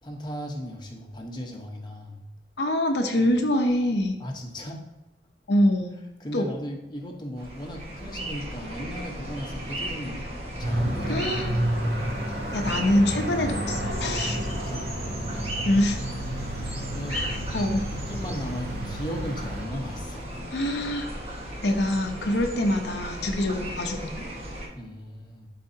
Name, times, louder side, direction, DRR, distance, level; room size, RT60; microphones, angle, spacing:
voice 1, 0.0-2.2 4.2-4.8 6.2-10.3 10.6-11.9 12.6-12.9 14.3-14.9 16.8-20.4 24.7-25.5, equal, 25° left, 1 dB, 1.0 m, -37 dB
voice 2, 2.6-4.1 5.5-5.9 6.3-6.5 11.1-11.5 12.5-14.4 15.6-16.0 17.1-17.8 20.5-21.1 21.6-24.3, left 1 dB, 80° left, 3 dB, 0.8 m, -25 dB
sound 1, 7.4-24.7, right 1 dB, 35° right, 1.4 m, -36 dB
sound 2, 10.6-19.6, right 1 dB, 90° right, 2.5 m, -31 dB
12.5 x 4.1 x 2.8 m, 1.0 s
head